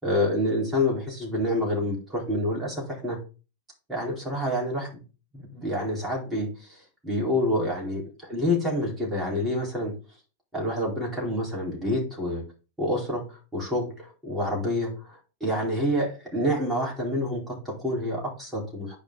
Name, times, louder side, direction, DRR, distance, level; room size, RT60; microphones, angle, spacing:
voice 1, 0.0-3.2 3.9-5.0 5.5-9.9 10.5-12.4 12.8-13.2 13.5-13.8 14.2-19.0, left 1 dB, 10° right, -3 dB, 4.3 m, -27 dB
9.1 x 5.3 x 4.0 m, 0.32 s
figure-of-eight pair, 90°, 0 cm